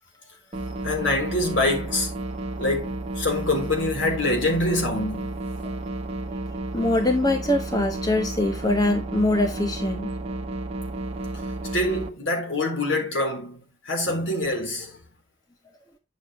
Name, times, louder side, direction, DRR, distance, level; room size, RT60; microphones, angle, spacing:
sound 1, 0.5-12.1, right 2 dB, 30° right, 1.4 m, -32 dB
voice 1, 0.8-2.1 2.6-5.3 11.7-15.0, left 2 dB, 75° left, 4.0 m, -25 dB
voice 2, 6.7-10.1, left 1 dB, 20° left, 1.1 m, -23 dB
9.9 x 7.0 x 3.2 m
head